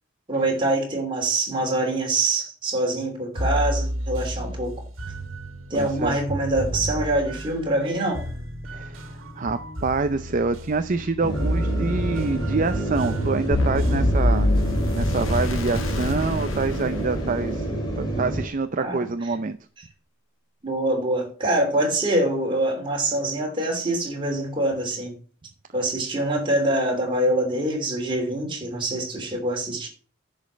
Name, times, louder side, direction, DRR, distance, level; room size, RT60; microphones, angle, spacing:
voice 1, 0.3-4.7 5.7-8.2 18.8-19.1 20.6-25.1 25.7-29.9, right 1 dB, 25° right, 0 dB, 3.2 m, -24 dB
sound 1, 3.4-16.1, right 1 dB, 75° right, 1.9 m, -32 dB
voice 2, 5.7-6.2 8.7-14.5 14.9-17.7 18.0-19.6, right 3 dB, 40° right, 10 dB, 0.5 m, -26 dB
sound 2, 11.2-18.5, right 1 dB, 20° left, 2.8 m, -28 dB
sound 3, 13.5-17.6, left 1 dB, 75° left, 1.5 m, -24 dB
10.5 x 5.2 x 7.4 m, 0.42 s
head